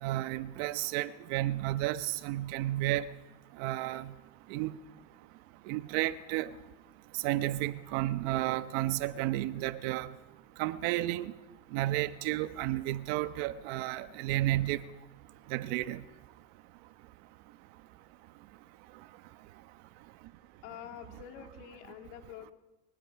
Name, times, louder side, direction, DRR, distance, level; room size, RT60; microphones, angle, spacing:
voice 1, 0.0-3.0 3.6-4.1 4.5-4.7 5.7-6.5 7.2-10.1 10.6-11.3 11.7-14.8 15.5-16.0, right 15 dB, 70° right, 1.1 m, -32 dB
voice 2, 20.6-22.5, left 11 dB, 80° left, 3.0 m, -47 dB
24.0 x 23.5 x 5.9 m
cardioid pair, 155°, 35 cm